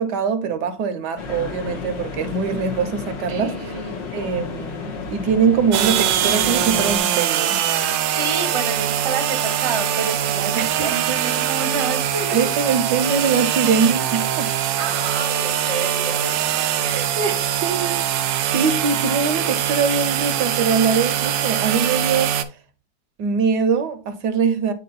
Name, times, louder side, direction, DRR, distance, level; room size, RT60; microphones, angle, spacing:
voice 1, 0.0-3.7 4.1-7.6 10.5-11.2 12.3-14.8 16.8-22.3 23.2-24.7, right 5 dB, 70° right, 1.3 m, -23 dB
sound 1, 1.2-7.0, left 5 dB, 80° left, 1.9 m, -32 dB
voice 2, 3.3-4.1 8.2-12.5 14.8-16.4, right 5 dB, 25° right, 0.7 m, -29 dB
sound 2, 5.7-22.4, right 10 dB, 90° right, 1.3 m, -22 dB
8.5 x 3.0 x 3.9 m
omnidirectional pair, 1.9 m